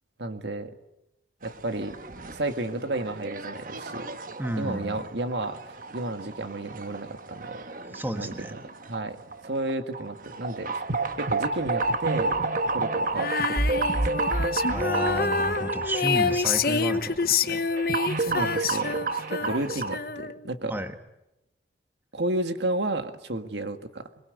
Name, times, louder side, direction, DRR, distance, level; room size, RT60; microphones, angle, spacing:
voice 1, 0.2-0.7 1.4-2.0 2.3-4.1 4.6-7.6 8.1-8.3 8.9-9.2 9.4-10.9 11.2-12.4 12.7-13.6 13.9-14.1 17.9-20.7 22.1-24.1, right 2 dB, 75° right, 7 dB, 1.9 m, -32 dB
sound 1, 1.4-20.0, right 3 dB, 50° right, 1.2 m, -31 dB
voice 2, 4.4-5.1 7.8-8.5 14.7-17.6 19.4-19.9 20.7-21.0, right 1 dB, 10° right, 7 dB, 1.4 m, -32 dB
Female singing, 13.1-20.5, left 5 dB, 55° left, 1.0 m, -27 dB
24.5 x 21.5 x 9.3 m, 0.91 s
head